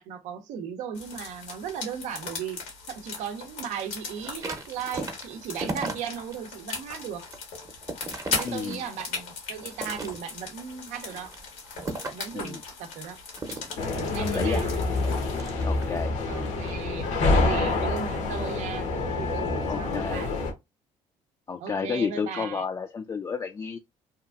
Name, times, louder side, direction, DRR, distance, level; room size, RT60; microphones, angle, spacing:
voice 1, 0.0-2.6 2.9-7.2 8.3-11.3 12.0-13.2 13.9-14.7 16.3-20.3 21.6-22.6, right 7 dB, 80° right, 0.6 m, -36 dB
sound 1, 0.9-15.4, left 4 dB, 90° left, 1.3 m, -38 dB
sound 2, 4.2-6.4 6.8-9.2 9.6-10.5 11.0-12.4 13.3-16.0 16.5-16.8, right 3 dB, 25° right, 0.7 m, -37 dB
voice 2, 8.4-8.9 12.3-12.6 14.2-14.6 15.6-16.1 17.3-17.4 18.1-18.2 19.7-20.3 21.5-23.8, left 5 dB, 30° left, 0.3 m, -31 dB
sound 3, 13.8-20.5, left 3 dB, 70° left, 0.8 m, -27 dB
2.9 x 2.4 x 2.3 m
supercardioid pair, 75°, 12 cm